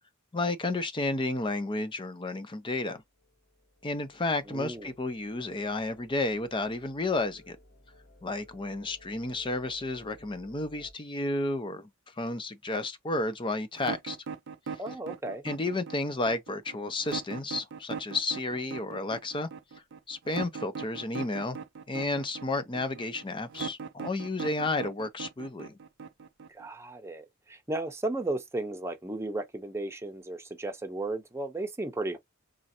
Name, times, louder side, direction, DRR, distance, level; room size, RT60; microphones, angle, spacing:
voice 1, 0.3-3.0 3.8-7.6 8.2-11.9 12.2-14.2 15.4-19.5 20.1-21.6 21.9-25.8, left 2 dB, 25° left, 0.5 m, -32 dB
sound 1, 2.8-10.9, left 1 dB, 40° left, 1.4 m, -58 dB
voice 2, 4.5-4.9 14.8-15.4 26.5-32.2, right 2 dB, 15° right, 0.7 m, -34 dB
sound 2, 13.8-26.7, right 5 dB, 60° right, 0.4 m, -39 dB
3.8 x 3.1 x 2.8 m
head